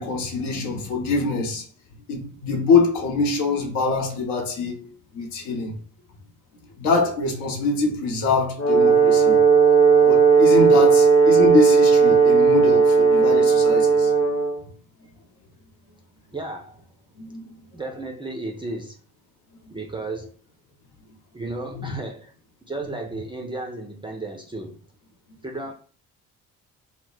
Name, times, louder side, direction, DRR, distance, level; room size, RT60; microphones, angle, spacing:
voice 1, 0.0-1.6 2.1-5.8 6.8-9.4 10.0-14.1 17.2-17.5 21.7-21.9, left 3 dB, 70° left, 0.8 m, -24 dB
Brass instrument, 8.6-14.6, right 5 dB, 35° left, 0.7 m, -16 dB
voice 2, 16.3-16.8 17.7-19.0 19.7-20.3 21.3-22.3 22.7-24.8 25.4-25.7, right 2 dB, 10° right, 0.4 m, -33 dB
2.1 x 2.0 x 3.7 m
figure-of-eight pair, 45°, 44 cm